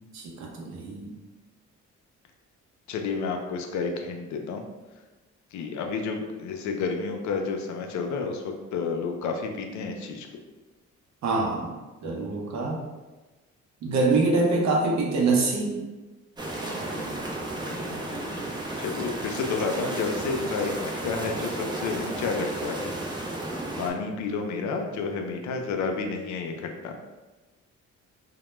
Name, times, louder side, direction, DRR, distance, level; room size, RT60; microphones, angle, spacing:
voice 1, 0.1-1.1 11.2-11.7 12.0-12.8 13.8-15.8 16.6-17.2, right 3 dB, 65° right, 0 dB, 0.6 m, -25 dB
voice 2, 2.9-4.6 5.5-10.3 17.5-23.4 23.8-27.0, left 4 dB, 70° left, 4 dB, 0.4 m, -31 dB
sound 1, 16.4-23.9, right 1 dB, 15° right, 0.4 m, -33 dB
2.1 x 2.0 x 3.0 m, 1.2 s
cardioid pair, 90°, 30 cm